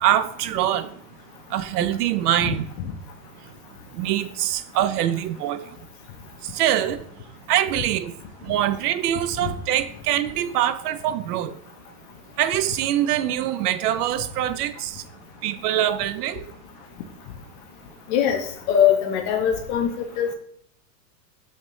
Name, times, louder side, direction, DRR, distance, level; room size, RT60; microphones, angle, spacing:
voice 1, 0.0-0.9 1.5-2.7 3.9-5.6 6.5-7.0 7.5-8.1 8.5-11.5 12.4-15.0 15.4-16.5, right 12 dB, 65° right, 0.5 m, -24 dB
voice 2, 2.4-2.9 9.4-9.5 18.1-20.3, left 9 dB, 35° left, 0.4 m, -22 dB
5.2 x 2.8 x 3.0 m
supercardioid pair, 135°, 49 cm